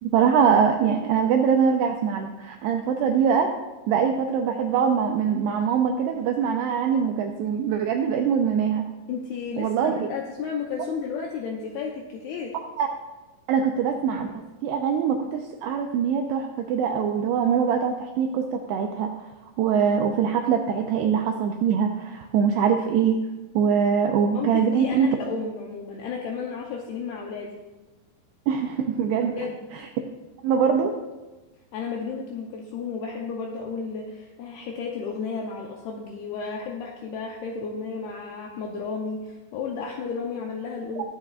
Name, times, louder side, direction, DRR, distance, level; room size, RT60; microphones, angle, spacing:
voice 1, 0.0-3.5 3.9-8.9 9.6-10.1 12.8-12.9 13.5-19.3 19.6-23.2 23.6-25.1 28.5-29.3 30.4-30.9, right 7 dB, 85° right, 4 dB, 2.3 m, -23 dB
voice 2, 9.1-12.6 24.3-25.0 25.3-27.5 29.2-29.7 31.7-41.0, left 5 dB, 85° left, 0 dB, 2.3 m, -33 dB
21.0 x 7.3 x 2.4 m, 1.2 s
omnidirectional pair, 5.4 m